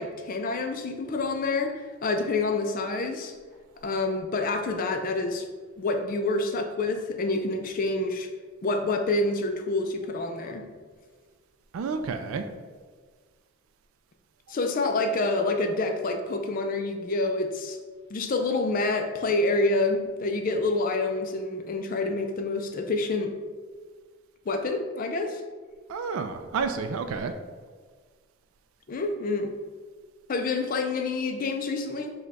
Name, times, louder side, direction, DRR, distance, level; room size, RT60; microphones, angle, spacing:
voice 1, 0.0-3.3 3.8-5.4 5.8-8.3 8.6-10.7 14.5-17.8 18.1-23.3 24.5-25.4 28.9-29.5 30.3-32.1, left 2 dB, 40° left, 5 dB, 0.3 m, -27 dB
voice 2, 11.7-12.4 25.9-27.3, right 5 dB, 70° right, 7 dB, 0.3 m, -30 dB
5.1 x 2.2 x 4.0 m, 1.6 s
head